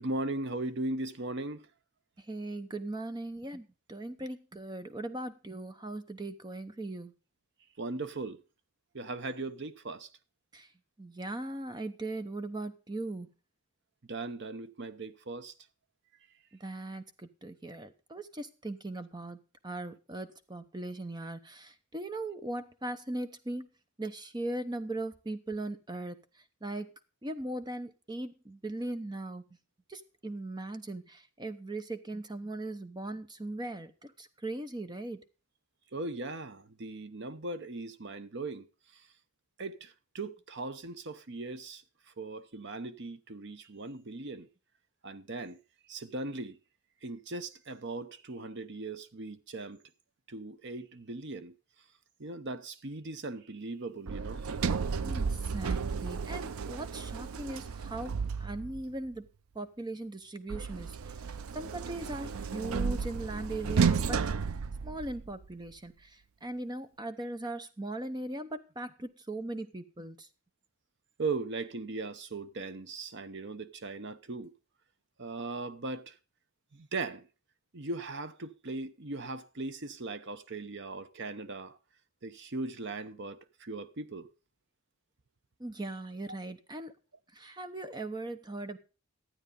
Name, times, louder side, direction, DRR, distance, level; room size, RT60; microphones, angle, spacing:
voice 1, 0.0-1.7 7.8-8.4 8.9-10.1 14.1-15.5 35.9-38.7 38.9-39.1 39.6-44.5 45.0-45.6 45.9-46.6 47.0-49.8 50.3-51.5 52.2-54.5 71.2-74.5 75.2-76.2 76.7-77.3 77.7-81.8 82.2-84.3, right 2 dB, 55° right, 0.8 m, -38 dB
voice 2, 2.2-7.1 10.5-10.7 11.0-13.3 16.6-23.7 24.0-26.2 26.6-26.9 27.2-29.5 29.9-35.2 55.0-59.3 59.5-61.2 61.5-64.2 64.8-70.3 85.6-86.9 87.3-88.8, right 2 dB, 20° right, 0.9 m, -39 dB
Sliding door, 54.1-58.9 60.5-65.4, right 5 dB, 75° right, 0.5 m, -33 dB
12.5 x 8.9 x 5.3 m
head